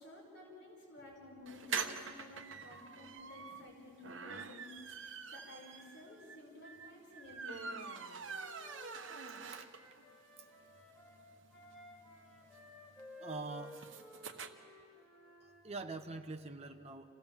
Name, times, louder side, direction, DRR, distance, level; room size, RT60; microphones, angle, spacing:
voice 1, 0.0-4.9 5.3-7.6, left 2 dB, 55° left, -3 dB, 5.0 m, -54 dB
sound 1, 1.5-10.0 10.4-10.5 10.8-10.9 11.1-14.5, right 5 dB, 65° right, 1.1 m, -45 dB
Wind instrument woodwind instrument, 7.6-15.6, left 1 dB, ahead, 3.5 m, -56 dB
voice 2, 13.2-13.8 15.4-17.1, right 3 dB, 30° right, 5 dB, 1.0 m, -45 dB
27.0 x 16.5 x 7.3 m, 2.6 s
head